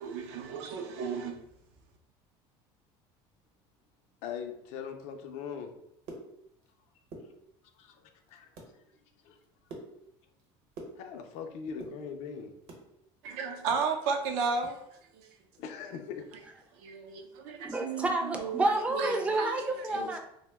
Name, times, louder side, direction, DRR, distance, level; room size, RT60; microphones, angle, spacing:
voice 1, 0.0-1.4 13.2-14.8 16.8-18.1 18.4-19.5 19.9-20.1, right 5 dB, 85° right, 3 dB, 0.5 m, -33 dB
voice 2, 4.2-5.7 7.8-8.5 9.2-9.4 11.0-12.5 13.3-13.7 15.6-16.2 19.9-20.1, left 6 dB, 65° left, 5 dB, 0.4 m, -41 dB
sound 1, 5.8-6.7 7.0-7.8 8.2-8.7 9.1-11.4 11.7-12.9 13.3-14.8 15.1-15.2 15.5-15.7 16.1-16.4, right 2 dB, 65° right, 0.8 m, -48 dB
voice 3, 17.6-20.2, right 2 dB, 10° right, 4 dB, 0.3 m, -29 dB
2.8 x 2.1 x 3.3 m, 0.78 s
cardioid pair, 145°, 12 cm